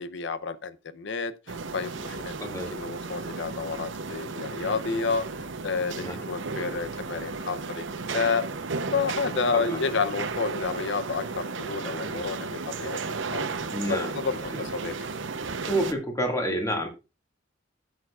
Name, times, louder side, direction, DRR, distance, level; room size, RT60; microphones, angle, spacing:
voice 1, 0.0-2.4 2.7-5.2 5.6-8.5 8.9-13.0 13.2-13.5 14.1-14.9, left 5 dB, 65° left, 0.7 m, -30 dB
Office Sound, 1.5-15.9, right 4 dB, 80° right, 0.8 m, -34 dB
voice 2, 2.4-2.7 5.9-6.2 9.5-9.8 13.7-14.2 14.5-14.6 15.7-16.9, equal, 15° left, 2.0 m, -29 dB
15.5 x 6.5 x 2.4 m
head